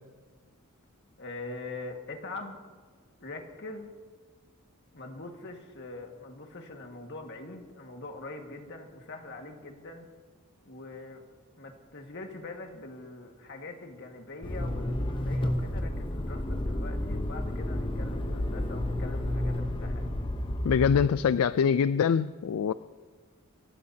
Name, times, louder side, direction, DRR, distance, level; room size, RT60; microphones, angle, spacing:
voice 1, 1.2-2.6 3.2-3.9 4.9-10.1 10.6-11.2 11.6-20.1, left 2 dB, 55° left, 3 dB, 1.8 m, -43 dB
Motor vehicle (road), 14.4-21.1, left 1 dB, 25° left, 0.9 m, -31 dB
voice 2, 20.6-22.7, left 7 dB, 70° left, 14 dB, 0.3 m, -24 dB
27.5 x 15.0 x 2.8 m, 1.5 s
head